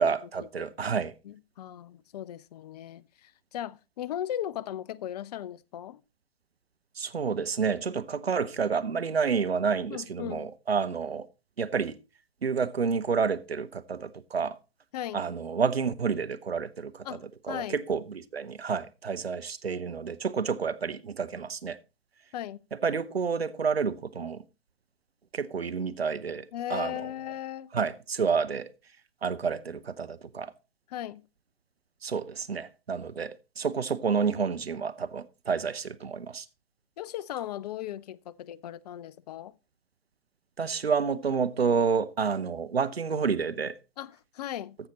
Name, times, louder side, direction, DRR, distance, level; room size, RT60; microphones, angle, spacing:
voice 1, 0.0-1.1 7.0-11.3 11.6-12.0 12.4-14.5 15.1-17.0 17.5-21.8 22.8-24.4 25.3-26.4 26.7-27.1 27.7-28.7 29.2-30.5 32.0-36.4 40.6-43.7, right 5 dB, 85° right, 0.9 m, -29 dB
voice 2, 1.2-6.0 9.9-10.5 14.9-15.2 17.0-17.8 22.3-22.6 26.5-27.7 30.9-31.2 37.0-39.5 44.0-44.8, left 11 dB, 45° left, 0.6 m, -37 dB
14.5 x 5.8 x 4.1 m
figure-of-eight pair, 120°, 30 cm